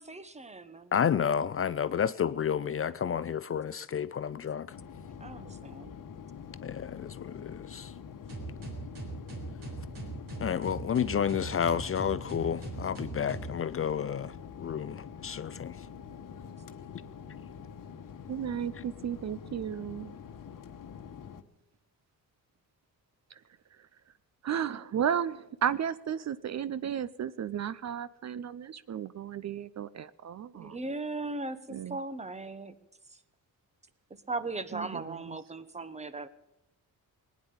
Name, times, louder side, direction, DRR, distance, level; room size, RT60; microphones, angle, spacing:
voice 1, 0.0-0.9 5.2-6.0 30.5-32.7 34.3-36.3, right 2 dB, 20° right, 1.1 m, -38 dB
voice 2, 0.9-4.7 6.6-7.9 10.4-14.3 14.6-15.7, left 8 dB, 40° left, 0.4 m, -30 dB
sound 1, 4.7-21.4, left 7 dB, 65° left, 1.2 m, -46 dB
sound 2, 8.3-13.6, right 3 dB, 70° right, 4.2 m, -40 dB
voice 3, 18.3-20.2 23.3-23.4 23.8-23.9 24.4-30.8 31.7-32.0 34.7-35.4, right 8 dB, 50° right, 0.5 m, -34 dB
19.0 x 9.7 x 7.1 m
cardioid pair, 115°, 35 cm